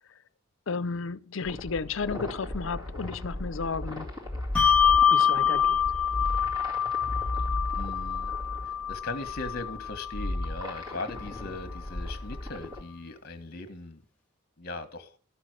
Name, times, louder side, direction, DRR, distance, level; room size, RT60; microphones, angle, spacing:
voice 1, 0.7-4.1 5.1-6.0, left 4 dB, 65° left, 0.6 m, -33 dB
sound 1, 1.4-12.8, left 1 dB, 20° right, 2.1 m, -36 dB
Bell, 4.5-11.4, left 8 dB, 5° left, 1.2 m, -26 dB
voice 2, 7.7-8.3 8.6-14.0 14.6-15.1, left 2 dB, 50° left, 1.5 m, -39 dB
13.0 x 6.1 x 6.4 m
head